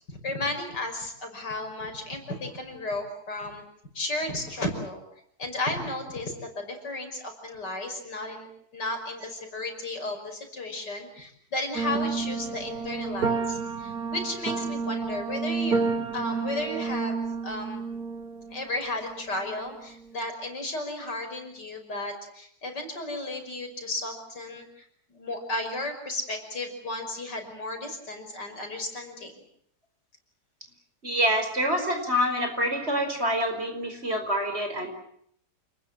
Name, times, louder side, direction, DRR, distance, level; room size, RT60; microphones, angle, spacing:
voice 1, 0.1-3.6 3.9-5.0 5.4-8.5 8.7-15.8 16.1-17.8 18.5-24.8 25.1-29.4, left 2 dB, 90° left, 5 dB, 6.2 m, -34 dB
sound 1, 11.7-20.1, right 4 dB, 65° right, 2.5 m, -31 dB
voice 2, 31.0-34.9, equal, 35° right, 5 dB, 5.5 m, -26 dB
28.5 x 20.5 x 7.7 m, 0.67 s
omnidirectional pair, 1.8 m